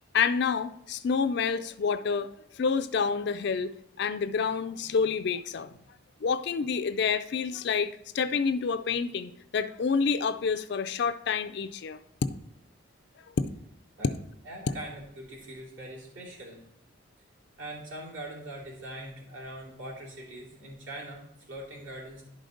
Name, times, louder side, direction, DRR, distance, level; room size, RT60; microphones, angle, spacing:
voice 1, 0.1-3.7 4.0-5.7 6.2-12.0, left 5 dB, 55° left, 12 dB, 0.4 m, -28 dB
voice 2, 14.4-16.6 17.6-22.2, right 1 dB, 70° right, -4 dB, 2.8 m, -42 dB
11.0 x 5.0 x 3.8 m, 0.75 s
head